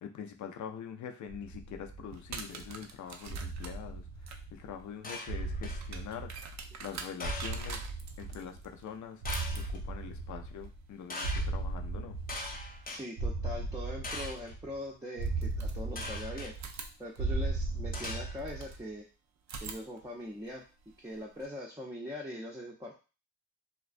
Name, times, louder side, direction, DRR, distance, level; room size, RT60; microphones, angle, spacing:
voice 1, 0.0-4.0 4.5-6.3 6.8-7.8 8.2-9.2 9.9-12.2, left 7 dB, 65° left, 5 dB, 0.5 m, -44 dB
sound 1, 1.3-2.6 3.3-4.8 5.3-6.9 7.2-8.8 9.2-10.9 11.2-12.8 13.2-14.8 15.2-16.8 17.2-18.8, right 2 dB, 85° right, 0.9 m, -37 dB
sound 2, 2.1-12.9 14.4-14.5 15.2-16.2 16.5-18.8 19.4-21.5, right 5 dB, 60° right, 0.5 m, -48 dB
sound 3, 5.0-5.9 7.2-7.8 9.2-9.8 11.1-11.5 12.3-13.0 14.0-14.5 16.0-16.5 17.9-18.7, left 2 dB, 25° left, 0.7 m, -41 dB
voice 2, 12.9-16.5 17.0-19.0 19.6-20.6 21.0-22.9, left 1 dB, 10° right, -4 dB, 0.5 m, -42 dB
2.3 x 2.2 x 2.5 m, 0.33 s
supercardioid pair, 40°, 32 cm